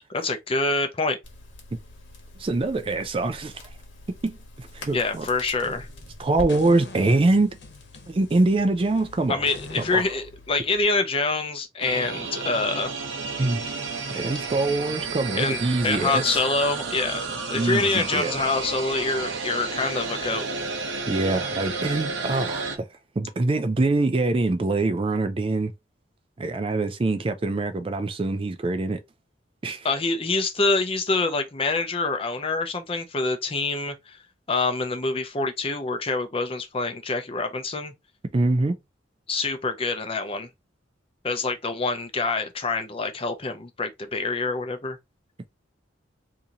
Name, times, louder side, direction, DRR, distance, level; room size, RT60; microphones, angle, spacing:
voice 1, 0.1-1.2 4.9-5.9 9.3-12.9 15.3-20.5 29.8-34.2 34.5-37.9 39.3-40.5 41.2-45.0, left 3 dB, 30° left, 0.6 m, -26 dB
Crackle, 1.2-10.8, left 1 dB, 90° left, 1.3 m, -44 dB
voice 2, 2.4-3.6 4.2-5.3 6.2-7.6 8.1-9.4 9.9-10.0 13.4-13.6 14.1-16.4 17.5-18.3 21.1-22.9 23.2-25.7 26.4-29.0 29.6-29.9 38.3-38.8, right 2 dB, 30° right, 0.4 m, -24 dB
sound 1, 4.6-6.1 6.5-10.0, left 2 dB, 65° left, 1.1 m, -44 dB
sound 2, 11.8-22.8, right 4 dB, 85° right, 0.8 m, -32 dB
2.9 x 2.8 x 3.6 m
head